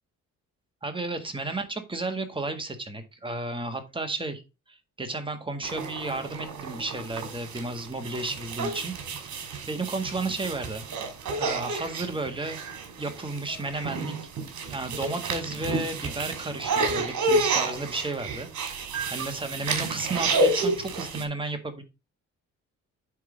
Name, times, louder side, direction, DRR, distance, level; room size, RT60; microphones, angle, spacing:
voice 1, 0.8-4.4 4.7-9.4 9.7-10.8 11.4-12.6 13.0-14.1 14.7-21.8, right 2 dB, 15° right, 5 dB, 1.7 m, -33 dB
sound 1, 5.6-21.2, right 2 dB, 70° right, 2.4 m, -30 dB
9.3 x 3.9 x 5.0 m, 0.27 s
cardioid pair, 90°, 30 cm